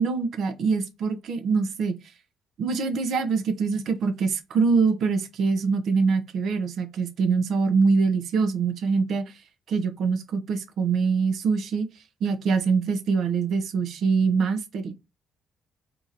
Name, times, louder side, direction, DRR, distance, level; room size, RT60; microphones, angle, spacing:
voice 1, 0.0-2.0 2.6-9.3 9.7-11.9 12.2-15.0, right 5 dB, 70° right, 0.7 m, -24 dB
2.9 x 2.6 x 3.9 m
cardioid pair, 90°, 0 cm